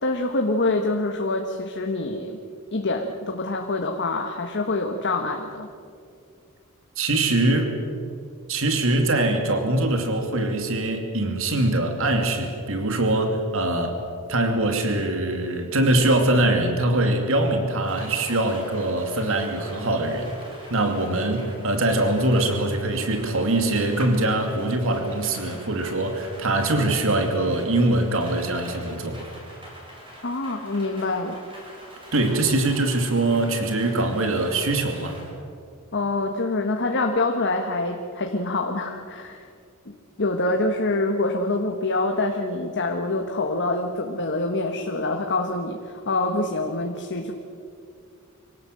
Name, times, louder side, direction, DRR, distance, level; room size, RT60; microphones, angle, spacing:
voice 1, 0.0-2.4 2.7-5.7 30.2-31.4 35.9-39.4 39.9-47.3, left 2 dB, 55° left, 3 dB, 1.5 m, -26 dB
voice 2, 7.0-7.7 8.5-14.0 14.3-20.3 20.7-29.2 32.1-35.2, right 2 dB, 65° right, 5 dB, 2.5 m, -23 dB
Rain, 17.8-35.3, equal, 25° right, 7.1 m, -44 dB
25.5 x 17.5 x 7.8 m, 2.3 s
head